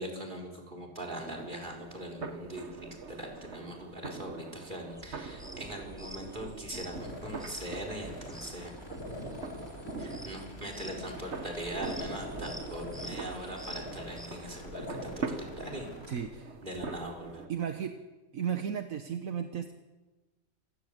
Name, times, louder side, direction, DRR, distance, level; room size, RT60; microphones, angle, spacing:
voice 1, 0.0-8.7 10.0-15.9 16.6-17.4, right 1 dB, 35° right, 3 dB, 4.8 m, -41 dB
sound 1, 1.1-17.5, right 4 dB, 50° right, 1.7 m, -44 dB
sound 2, 4.9-14.3, right 1 dB, ahead, 2.9 m, -48 dB
sound 3, 6.9-16.2, left 1 dB, 80° left, 4.6 m, -44 dB
voice 2, 16.1-16.6 17.5-18.0 18.3-19.7, right 8 dB, 70° right, 7 dB, 1.5 m, -34 dB
28.0 x 16.0 x 8.0 m, 1.2 s
omnidirectional pair, 1.5 m